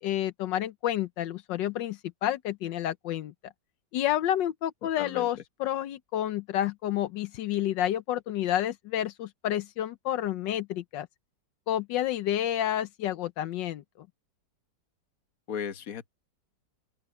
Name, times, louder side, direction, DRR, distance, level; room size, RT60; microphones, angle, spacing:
voice 1, 0.0-3.3 3.9-11.1 11.7-14.1, left 12 dB, 85° left, 1.4 m, -30 dB
voice 2, 5.0-5.3 15.5-16.1, left 7 dB, 55° left, 1.5 m, -35 dB
open air
omnidirectional pair, 1.9 m